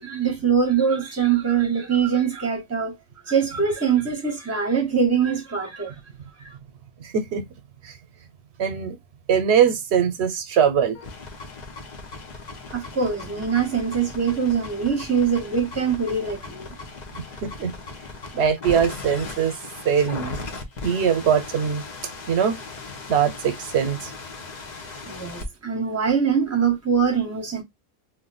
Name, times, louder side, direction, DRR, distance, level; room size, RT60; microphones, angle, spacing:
voice 1, 0.0-2.9 3.3-5.9 12.7-16.7 25.1-27.6, right 6 dB, 15° right, 0.8 m, -23 dB
voice 2, 7.0-7.4 7.8-7.9 8.6-9.0 9.3-11.0 17.1-17.7 18.3-19.5 19.8-20.5 20.8-21.8 22.3-22.6 23.1-24.1, right 7 dB, 80° right, 0.9 m, -22 dB
sound 1, 10.9-25.5, left 3 dB, 45° left, 0.7 m, -38 dB
2.5 x 2.1 x 3.8 m
omnidirectional pair, 1.1 m